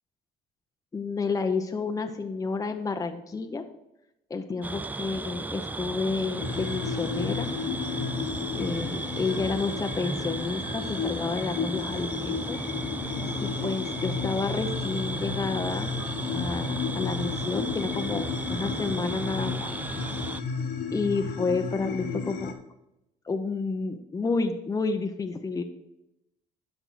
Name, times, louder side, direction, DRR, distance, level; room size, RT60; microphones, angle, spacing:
voice 1, 0.9-3.6 4.3-7.5 8.5-12.6 13.4-15.9 16.3-19.7 20.9-22.5 23.3-25.6, left 4 dB, 20° left, 5 dB, 0.8 m, -30 dB
sound 1, 4.6-20.4, right 2 dB, 10° right, 0.3 m, -35 dB
sound 2, 6.4-22.5, left 5 dB, 75° left, 1.6 m, -33 dB
12.0 x 5.4 x 4.6 m, 0.87 s
cardioid pair, 110°, 17 cm